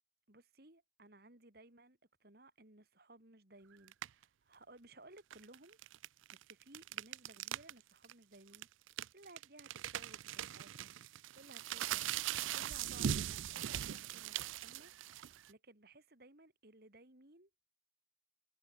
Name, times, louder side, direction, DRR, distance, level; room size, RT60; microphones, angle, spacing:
voice 1, 0.3-5.8 6.3-8.7 9.1-10.9 11.3-12.1 12.5-14.9 15.5-17.7, right 2 dB, 55° right, 2.9 m, -60 dB
sound 1, 3.9-4.2 5.2-7.7 8.0-8.1 8.5-15.5, right 10 dB, 85° right, 0.4 m, -40 dB
head